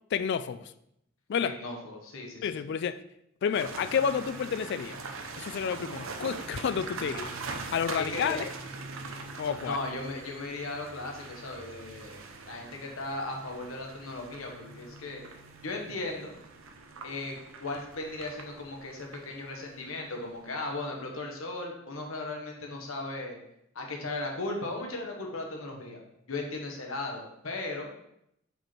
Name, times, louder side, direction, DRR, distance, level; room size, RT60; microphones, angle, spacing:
voice 1, 0.1-0.7 1.3-1.6 2.4-3.0 3.4-5.0 5.4-7.3 7.7-8.5 9.4-9.8, left 7 dB, 55° left, 0.3 m, -30 dB
voice 2, 1.4-2.6 8.0-8.4 9.6-15.2 15.6-16.3 17.0-23.4 23.7-26.0 26.3-27.9, left 2 dB, 80° left, 1.2 m, -37 dB
sound 1, 3.5-20.7, right 4 dB, 75° right, 0.7 m, -43 dB
5.4 x 4.4 x 4.5 m
head